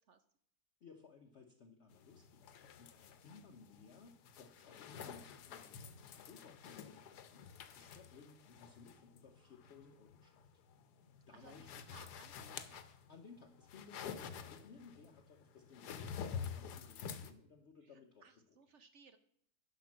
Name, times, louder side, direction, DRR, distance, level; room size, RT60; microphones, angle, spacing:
voice 1, 0.8-10.5 11.3-11.8 12.6-12.7 13.1-18.6, left 5 dB, 50° left, 5 dB, 0.9 m, -60 dB
sound 1, 1.9-17.3, left 7 dB, 75° left, 1.4 m, -49 dB
voice 2, 11.3-12.9 17.8-19.2, right 5 dB, 60° right, 10 dB, 0.8 m, -62 dB
10.5 x 5.2 x 7.3 m, 0.69 s
omnidirectional pair, 1.8 m